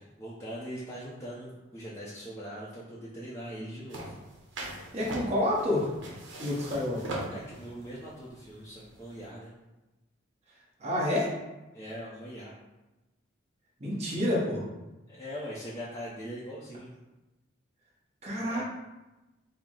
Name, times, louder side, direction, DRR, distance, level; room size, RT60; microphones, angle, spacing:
voice 1, 0.0-4.2 7.3-9.5 11.7-12.5 15.1-16.9 18.3-18.6, equal, 15° left, -8 dB, 0.5 m, -41 dB
sound 1, 3.9-9.2, right 1 dB, 70° right, 0.9 m, -40 dB
voice 2, 4.7-5.9 6.4-7.1 10.8-11.3 13.8-14.6 18.2-18.6, left 1 dB, 30° right, -5 dB, 0.9 m, -29 dB
4.5 x 2.0 x 3.7 m, 1.0 s
head